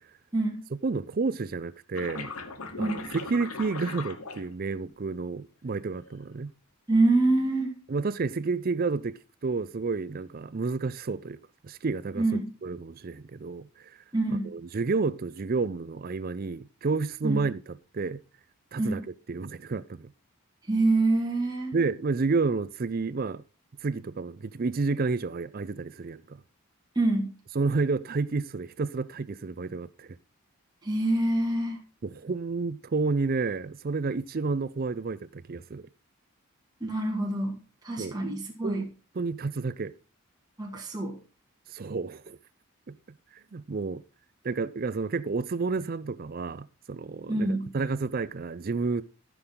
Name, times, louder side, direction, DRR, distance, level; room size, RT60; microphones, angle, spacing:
voice 1, 0.8-2.3 2.8-6.5 7.9-11.4 11.6-13.9 14.4-18.2 18.7-19.0 19.3-20.1 21.7-23.4 23.8-26.4 27.5-30.2 32.0-35.9 38.0-38.1 38.6-38.9 39.2-39.9 41.7-42.4 42.9-43.0 43.5-44.0 44.4-47.5 47.7-49.0, right 4 dB, 40° right, 0.4 m, -30 dB
sound 1, 1.9-4.9 5.7-6.2, left 3 dB, 80° left, 1.1 m, -39 dB
voice 2, 6.9-7.7 12.2-12.5 14.1-14.5 17.2-17.4 18.8-19.0 20.7-21.7 27.0-27.3 30.8-31.8 36.8-37.6 37.8-38.9 40.6-41.2 47.3-47.7, right 2 dB, 20° right, 2.0 m, -26 dB
13.5 x 6.2 x 3.8 m
head